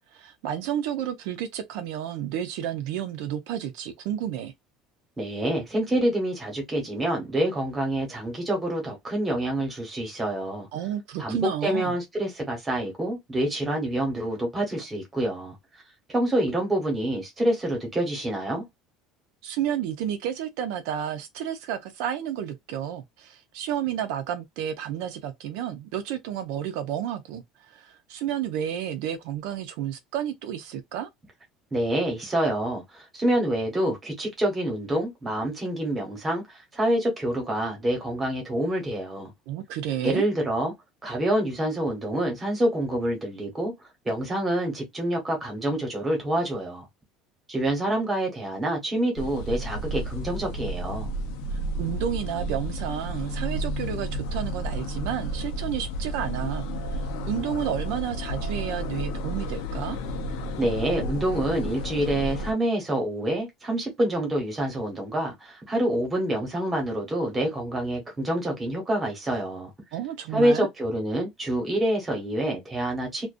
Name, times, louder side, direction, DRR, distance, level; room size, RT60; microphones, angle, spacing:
voice 1, 0.1-4.5 10.7-11.9 19.4-31.1 39.5-40.2 51.5-60.0 69.9-70.7, right 10 dB, 70° right, 0.4 m, -31 dB
voice 2, 5.2-10.7 11.2-15.6 16.1-18.6 31.7-39.3 40.0-40.7 41.0-43.7 44.0-46.9 47.5-51.1 60.6-69.7 70.3-73.3, right 1 dB, 15° right, 0.9 m, -27 dB
sound 1, 49.2-62.5, equal, 85° left, 0.6 m, -32 dB
2.4 x 2.2 x 2.4 m
cardioid pair, 170°, 0 cm